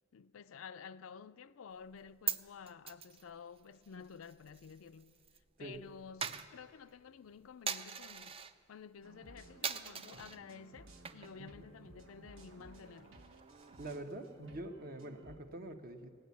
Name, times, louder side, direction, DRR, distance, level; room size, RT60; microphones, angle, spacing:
voice 1, 0.1-5.2 5.6-8.4 8.7-13.2, left 6 dB, 75° left, 0.4 m, -52 dB
Coin (dropping), 1.8-5.4 5.6-8.6 9.0-9.3 9.6-10.4 10.9-11.5 11.8-11.9 12.2-14.2, right 7 dB, 30° right, 0.4 m, -43 dB
sound 1, 9.0-15.4, right 2 dB, 70° right, 1.2 m, -57 dB
voice 2, 13.8-16.1, right 1 dB, 45° right, 1.0 m, -45 dB
17.0 x 9.3 x 8.3 m
head